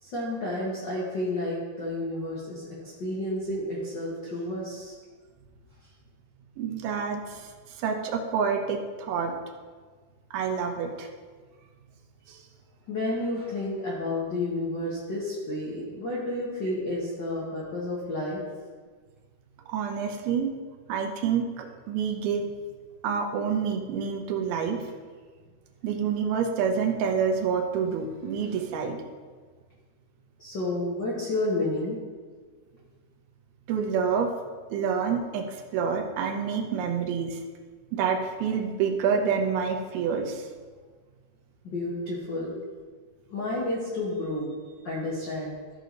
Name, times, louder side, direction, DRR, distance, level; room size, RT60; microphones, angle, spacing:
voice 1, 0.0-4.9 12.9-18.4 30.4-32.0 41.6-42.6 43.3-44.6 44.8-45.6, left 1 dB, 55° left, -6 dB, 1.2 m, -31 dB
voice 2, 6.6-9.3 10.3-11.1 12.3-12.4 19.7-20.5 20.9-22.5 23.0-24.9 25.8-29.0 33.7-34.3 34.7-37.4 37.9-40.5, right 6 dB, 80° right, 3 dB, 2.8 m, -28 dB
14.5 x 4.9 x 3.9 m, 1.5 s
omnidirectional pair, 4.5 m